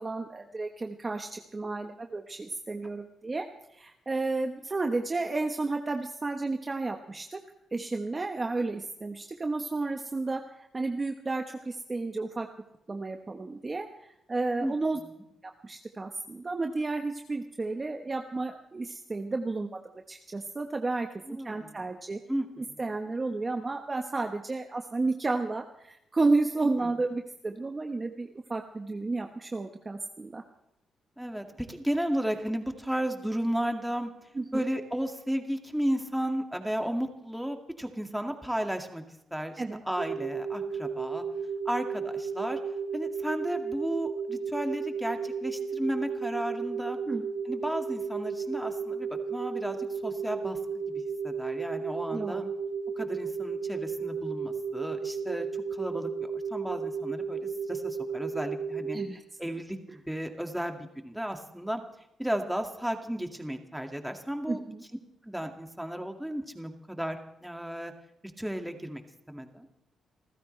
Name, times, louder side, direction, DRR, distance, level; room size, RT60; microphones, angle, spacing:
voice 1, 0.0-3.5 3.8-7.4 7.7-12.5 12.9-15.0 15.6-19.8 20.1-21.1 21.4-22.2 22.6-30.4 34.3-34.6 39.6-39.8 47.1-47.3 52.1-52.5 58.9-59.2 64.5-64.8, right 3 dB, 25° right, 4 dB, 1.2 m, -32 dB
voice 2, 21.3-21.7 22.3-22.8 26.8-27.0 31.2-34.1 34.5-39.0 39.3-41.2 41.7-42.6 42.9-47.0 47.5-49.8 50.0-50.6 51.0-52.4 53.0-57.4 57.7-59.0 59.4-59.8 60.1-61.8 62.2-64.6 65.2-67.2 67.4-67.9 68.4-69.0 69.3-69.7, equal, 5° right, 4 dB, 2.1 m, -33 dB
sound 1, 40.0-59.1, right 5 dB, 45° right, 2.3 m, -34 dB
28.5 x 15.0 x 3.3 m, 0.83 s
cardioid pair, 110°, 0 cm